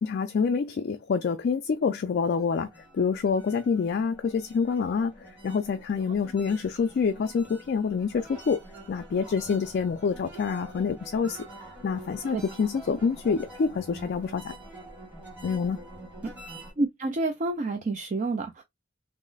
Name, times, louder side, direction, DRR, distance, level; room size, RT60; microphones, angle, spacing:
voice 1, 0.0-8.6 8.9-11.4 11.8-14.6 15.4-15.8, left 5 dB, 50° left, 0.3 m, -27 dB
sound 1, 2.3-16.7, right 1 dB, 10° right, 1.1 m, -46 dB
voice 2, 16.8-18.6, right 2 dB, 35° right, 0.4 m, -28 dB
3.1 x 2.0 x 3.8 m
head